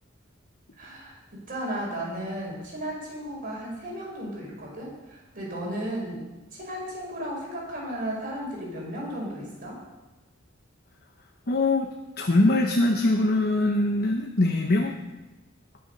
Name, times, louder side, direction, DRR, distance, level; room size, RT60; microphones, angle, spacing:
voice 1, 0.8-6.2 6.5-9.8, right 1 dB, 45° right, -3 dB, 5.7 m, -34 dB
voice 2, 11.5-11.9 12.2-14.9, left 2 dB, 50° left, 2 dB, 1.0 m, -22 dB
20.5 x 7.0 x 5.5 m, 1.1 s
head